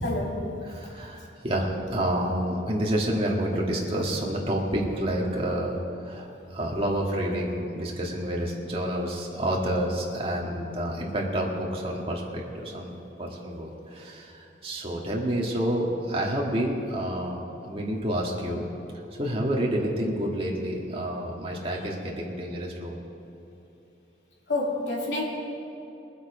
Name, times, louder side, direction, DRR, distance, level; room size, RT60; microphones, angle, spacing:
voice 1, 0.0-0.5 24.5-25.2, left 2 dB, 85° left, -2 dB, 2.6 m, -28 dB
voice 2, 0.6-5.8 6.0-12.9 13.2-18.7 19.2-23.0, right 1 dB, 30° right, -2 dB, 1.9 m, -29 dB
20.5 x 7.9 x 5.0 m, 2.9 s
head